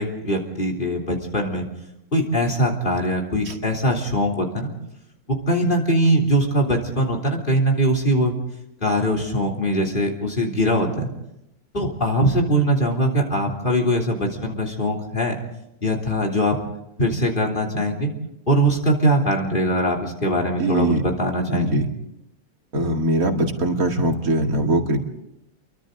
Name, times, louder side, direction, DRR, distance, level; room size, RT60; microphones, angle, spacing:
voice 1, 0.0-1.7 2.1-4.7 5.3-8.4 8.8-11.1 11.7-15.4 15.8-16.6 17.0-18.1 18.5-21.7, equal, 35° left, 2 dB, 3.5 m, -21 dB
voice 2, 20.6-21.0 21.5-21.9 22.7-25.0, right 1 dB, 70° right, 3 dB, 2.6 m, -21 dB
30.0 x 23.0 x 3.9 m, 0.85 s
omnidirectional pair, 1.6 m